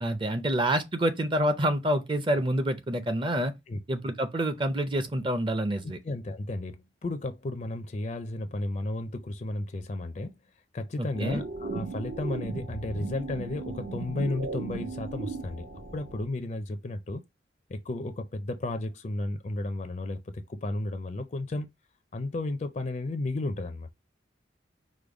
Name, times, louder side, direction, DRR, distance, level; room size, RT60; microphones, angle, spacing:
voice 1, 0.0-3.5 3.9-6.0 11.0-11.4, right 1 dB, 25° right, 0.5 m, -27 dB
voice 2, 5.8-10.3 10.7-15.7 15.9-17.2 17.7-21.7 22.1-23.9, left 2 dB, 35° left, 0.4 m, -33 dB
sound 1, 11.1-16.2, right 3 dB, 80° right, 1.0 m, -37 dB
5.0 x 2.2 x 4.8 m
head